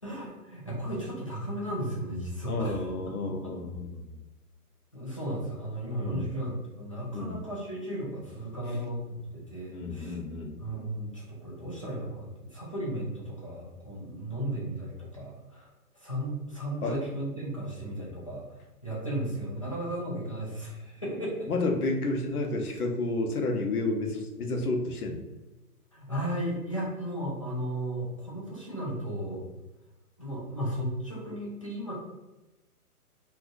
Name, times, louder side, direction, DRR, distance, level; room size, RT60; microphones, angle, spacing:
voice 1, 0.0-2.9 3.4-3.5 4.9-10.2 10.6-21.5 25.9-29.4 30.2-31.9, right 1 dB, 25° left, -6 dB, 0.4 m, -35 dB
voice 2, 2.5-4.2 6.0-6.3 7.1-7.4 8.7-8.8 9.7-10.6 16.8-17.0 21.5-25.2, left 2 dB, 70° left, 3 dB, 0.9 m, -31 dB
2.7 x 2.5 x 3.7 m, 1.1 s
hypercardioid pair, 160°, 47 cm